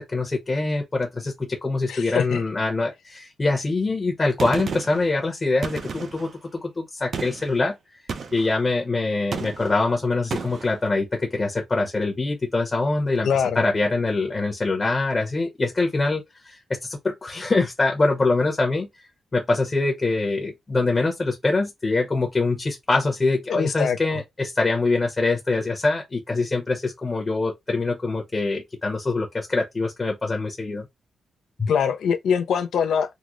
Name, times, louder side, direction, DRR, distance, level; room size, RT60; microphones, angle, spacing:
voice 1, 0.0-7.7 8.3-13.3 13.5-18.9 19.3-30.9 31.6-31.7, left 3 dB, 25° left, 0.8 m, -24 dB
voice 2, 1.9-2.4 13.2-13.6 23.5-24.2 31.7-33.1, left 7 dB, 75° left, 0.4 m, -23 dB
Gunshot gunfire, 4.4-5.1 5.6-6.3 7.1-7.5 8.1-8.5 9.3-9.8 10.3-10.7, right 5 dB, 45° right, 0.5 m, -32 dB
3.6 x 2.0 x 3.0 m
wide cardioid pair, 160°, 0 cm